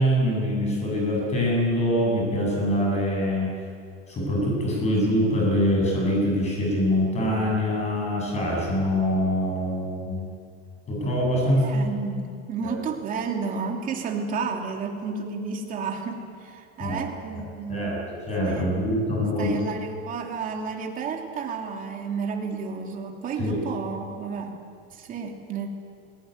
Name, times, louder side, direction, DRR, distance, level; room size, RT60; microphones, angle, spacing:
voice 1, 0.0-3.5 4.1-10.2 10.9-11.8 12.6-12.7 16.8-17.0 17.7-18.0 18.3-19.5 23.4-23.5, equal, 20° left, -2 dB, 7.9 m, -24 dB
voice 2, 11.5-18.0 18.4-18.8 19.4-24.6 24.9-25.7, right 5 dB, 25° right, 2 dB, 2.9 m, -32 dB
20.5 x 20.0 x 9.6 m, 2.3 s
supercardioid pair, 155°, 30 cm